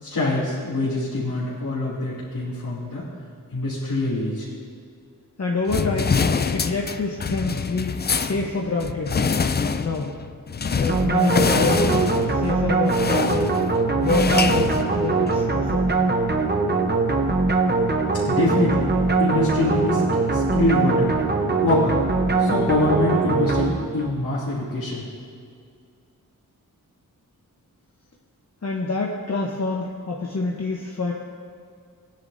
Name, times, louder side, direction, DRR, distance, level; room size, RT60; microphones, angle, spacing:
voice 1, 0.0-3.0 3.5-4.5 18.3-21.1 21.6-22.0 22.4-25.1, left 2 dB, 80° left, -10 dB, 2.9 m, -24 dB
voice 2, 5.4-6.2 6.5-7.9 8.3-9.2 9.8-10.1 10.7-13.6 14.0-16.1 28.6-31.1, left 3 dB, 50° left, -1 dB, 1.1 m, -27 dB
sound 1, 5.7-15.5, left 5 dB, 30° left, 0.4 m, -25 dB
sound 2, 10.9-24.2, right 3 dB, 30° right, 0.9 m, -22 dB
18.5 x 10.0 x 2.7 m, 2.2 s
wide cardioid pair, 95°, 34 cm